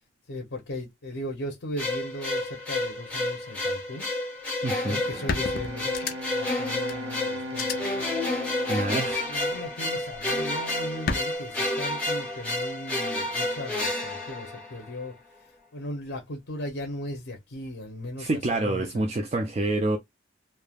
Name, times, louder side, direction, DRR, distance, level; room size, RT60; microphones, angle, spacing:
voice 1, 0.3-4.1 4.8-8.1 9.2-19.1, left 1 dB, 75° left, 0.7 m, -37 dB
sound 1, 1.8-15.0, left 1 dB, 5° left, 1.1 m, -30 dB
voice 2, 4.6-5.0 8.7-9.4 18.2-20.0, right 2 dB, 35° right, 0.3 m, -27 dB
sound 2, 4.7-4.8 5.3-6.5 6.9-7.0 7.5-7.7 9.1-9.5 11.1-11.2, left 4 dB, 50° left, 0.4 m, -31 dB
Bowed string instrument, 5.0-10.6, left 1 dB, 75° right, 0.7 m, -39 dB
3.2 x 2.2 x 2.2 m
head